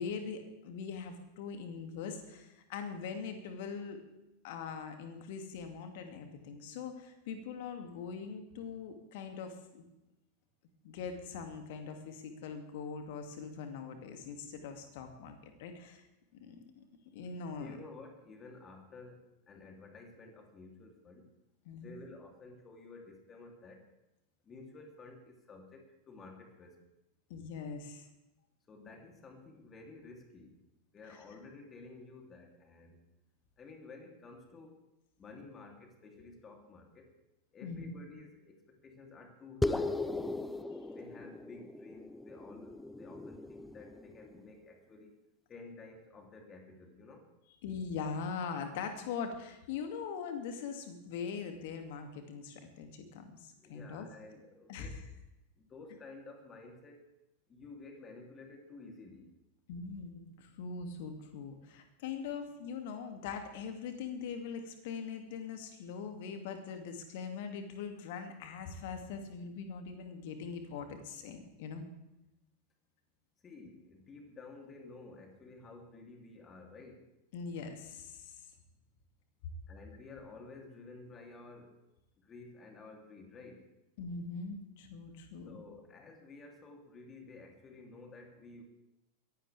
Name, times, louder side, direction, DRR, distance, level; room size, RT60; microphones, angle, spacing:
voice 1, 0.0-4.0 4.4-9.8 10.8-16.0 16.3-16.8 17.1-17.8 21.7-22.0 27.3-28.0 31.1-31.2 37.6-38.0 47.6-54.1 54.7-55.0 59.7-71.8 77.3-78.4 84.0-85.6, left 5 dB, 50° left, 6 dB, 2.4 m, -42 dB
voice 2, 17.6-21.3 21.8-23.9 24.4-26.8 28.7-30.6 30.9-33.0 33.6-34.7 35.2-37.1 37.5-40.5 40.9-45.2 45.5-47.3 53.6-55.0 55.5-57.1 57.5-59.3 73.4-77.0 79.7-81.7 82.2-83.7 85.5-88.6, left 3 dB, 20° left, 3 dB, 3.1 m, -52 dB
sound 1, 39.6-44.4, left 2 dB, 5° left, 0.7 m, -37 dB
22.0 x 15.5 x 3.5 m, 0.93 s
figure-of-eight pair, 90°, 0 cm